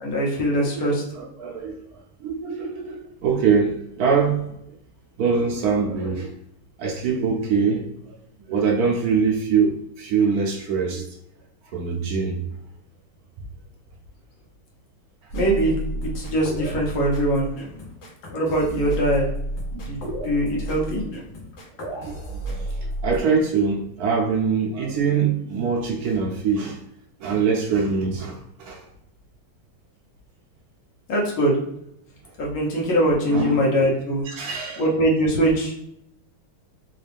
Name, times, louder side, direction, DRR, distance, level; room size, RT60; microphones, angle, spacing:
voice 1, 0.0-1.0 15.3-15.7 16.0-17.5 18.3-19.3 19.7-21.0 31.1-31.6 32.4-34.2 34.8-35.7, right 1 dB, 75° left, 1.9 m, -22 dB
voice 2, 0.8-1.8 2.2-4.4 5.2-6.3 6.8-7.8 8.5-11.0 11.7-12.4 22.0-22.5 23.0-26.8 27.2-28.8 33.3-33.7 34.2-34.8, right 5 dB, 85° right, 0.8 m, -23 dB
sound 1, 15.3-23.2, right 1 dB, 60° left, 1.3 m, -32 dB
4.0 x 2.4 x 3.3 m
omnidirectional pair, 2.3 m